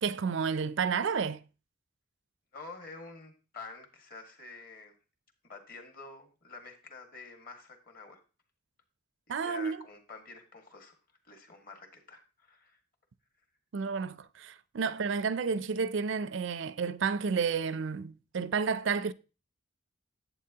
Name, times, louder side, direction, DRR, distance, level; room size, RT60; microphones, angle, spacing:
voice 1, 0.0-1.4 9.3-9.8 13.7-19.1, right 5 dB, 65° right, 0.4 m, -31 dB
voice 2, 2.5-4.9 5.4-8.2 9.3-11.0 11.2-12.8, left 3 dB, 45° left, 1.7 m, -48 dB
11.0 x 8.2 x 2.8 m
head